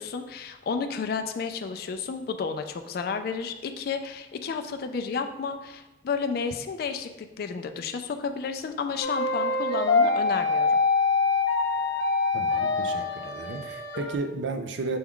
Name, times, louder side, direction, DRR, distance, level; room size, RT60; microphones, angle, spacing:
voice 1, 0.0-7.1 7.4-10.8, left 5 dB, 55° left, 7 dB, 0.3 m, -32 dB
sound 1, 9.0-14.2, left 4 dB, 85° left, 0.7 m, -25 dB
voice 2, 12.3-15.0, right 3 dB, 80° right, 6 dB, 0.4 m, -33 dB
6.1 x 2.3 x 3.6 m, 1.0 s
head